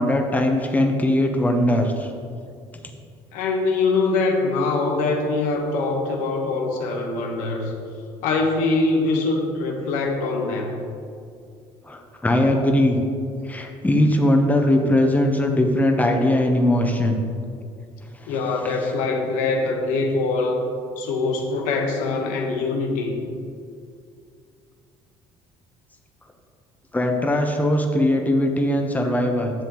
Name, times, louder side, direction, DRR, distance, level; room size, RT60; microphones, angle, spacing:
voice 1, 0.0-2.1 11.9-13.0 13.4-17.2 18.2-18.3 26.9-29.5, left 1 dB, 10° left, 3 dB, 1.0 m, -20 dB
voice 2, 3.3-7.7 8.2-10.8 18.3-20.7 21.0-23.1, left 3 dB, 80° left, 2 dB, 1.2 m, -23 dB
10.5 x 7.0 x 3.1 m, 2.3 s
supercardioid pair, 75°, 13 cm